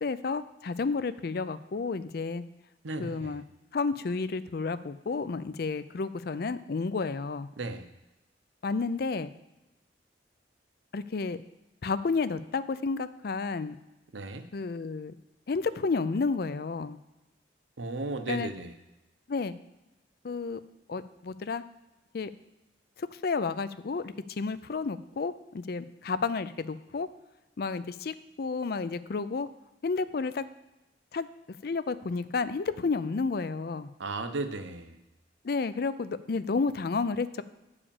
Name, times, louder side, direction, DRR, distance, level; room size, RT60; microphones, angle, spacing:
voice 1, 0.0-2.4 3.0-3.4 3.7-7.5 8.6-9.3 10.9-11.4 11.8-13.8 14.5-15.2 15.5-17.0 18.3-18.5 19.3-19.6 20.2-20.6 20.9-21.6 22.1-22.3 23.0-27.1 27.6-29.5 29.8-30.5 31.1-31.3 31.6-33.9 35.4-37.4, left 4 dB, 55° left, 14 dB, 0.4 m, -31 dB
voice 2, 2.8-3.4 7.6-7.9 14.1-14.5 17.8-18.7 34.0-35.0, right 2 dB, 90° right, 9 dB, 0.8 m, -35 dB
8.5 x 5.0 x 7.0 m, 1.0 s
head